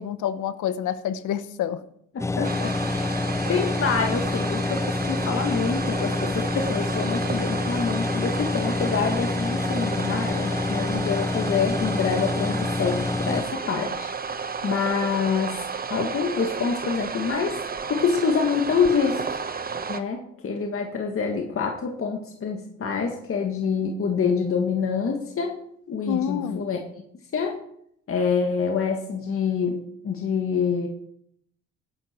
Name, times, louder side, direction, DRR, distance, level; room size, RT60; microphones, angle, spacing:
voice 1, 0.0-1.8 26.1-26.7, left 9 dB, 80° left, 13 dB, 1.1 m, -28 dB
voice 2, 2.1-3.0 3.5-14.1 14.6-15.6 15.9-17.6 17.9-19.4 19.9-25.6 25.9-26.8 27.3-27.6 28.1-30.9, left 5 dB, 45° left, 2 dB, 1.8 m, -26 dB
sound 1, 2.2-13.4, left 3 dB, 10° left, 0.5 m, -27 dB
sound 2, 2.4-20.0, right 5 dB, 30° right, 1.0 m, -33 dB
16.5 x 10.5 x 4.5 m, 0.72 s
cardioid pair, 90°, 30 cm